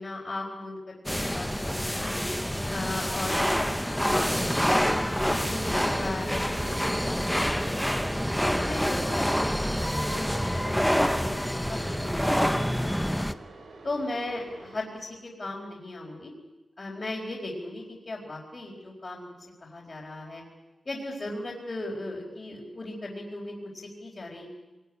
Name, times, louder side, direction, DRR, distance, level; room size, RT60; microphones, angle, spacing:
voice 1, 0.0-2.2 2.7-3.7 4.0-4.9 5.3-8.0 8.6-13.3 13.8-16.3 16.8-19.3 19.6-20.4 20.8-23.7 24.0-24.5, left 2 dB, 35° left, -5 dB, 4.4 m, -37 dB
sound 1, 1.1-13.3, equal, ahead, 0.8 m, -27 dB
sound 2, 5.4-14.8, right 3 dB, 80° right, 4.3 m, -47 dB
26.0 x 20.0 x 10.0 m, 1.1 s
wide cardioid pair, 170°, 0 cm